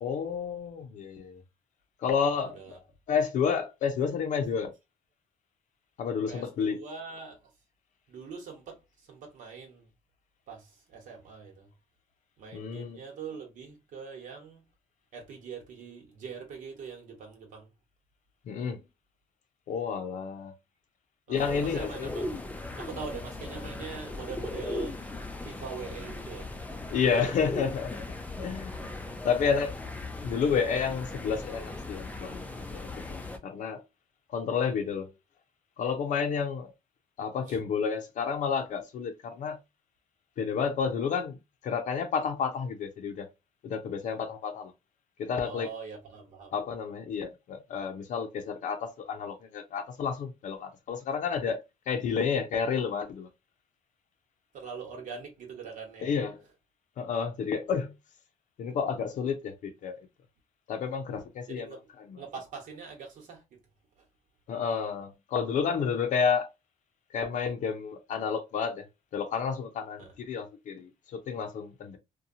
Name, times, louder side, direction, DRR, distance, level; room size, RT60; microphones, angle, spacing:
voice 1, 0.0-1.4 2.0-2.8 3.1-4.7 6.0-6.8 12.5-13.0 18.5-18.8 19.7-20.5 21.3-22.1 26.9-28.1 28.4-28.7 29.2-29.8 30.2-33.8 34.3-35.1 35.8-36.7 37.2-39.6 40.4-41.4 41.6-43.3 43.6-44.7 45.2-45.7 46.5-53.3 56.0-56.4 57.0-57.9 58.6-60.0 60.7-61.7 64.5-66.5 67.1-68.9 69.1-72.0, left 6 dB, 70° left, 0.6 m, -30 dB
voice 2, 2.4-2.8 6.3-7.5 8.1-9.9 10.5-11.7 12.4-14.6 15.1-17.7 21.3-22.3 22.8-25.0 25.4-26.5 26.9-27.2 29.1-29.2 37.5-37.6 45.4-46.5 54.5-56.1 61.5-61.8 62.2-63.4 64.0-64.1 70.0-70.1, right 5 dB, 75° right, 1.1 m, -43 dB
sound 1, 21.3-33.4, left 2 dB, 10° left, 0.4 m, -38 dB
2.8 x 2.2 x 2.6 m
cardioid pair, 120°, 14 cm